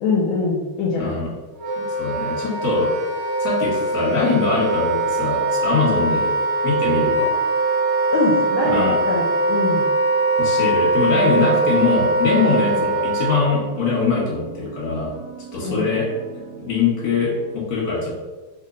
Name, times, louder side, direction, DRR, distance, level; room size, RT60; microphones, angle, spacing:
voice 1, 0.0-1.2 8.1-9.8 12.7-12.8 15.6-15.9, left 3 dB, 75° left, -2 dB, 1.3 m, -23 dB
voice 2, 1.0-1.3 1.8-2.9 3.4-6.3 6.6-7.3 8.7-8.9 10.4-15.1 15.5-16.1 16.6-18.2, left 4 dB, 50° left, -5 dB, 1.5 m, -22 dB
Wind instrument woodwind instrument, 1.5-13.5, right 2 dB, 55° right, 1.0 m, -21 dB
sound 1, 12.2-17.6, right 6 dB, 80° right, 1.4 m, -40 dB
3.5 x 2.1 x 3.7 m, 1.3 s
omnidirectional pair, 2.4 m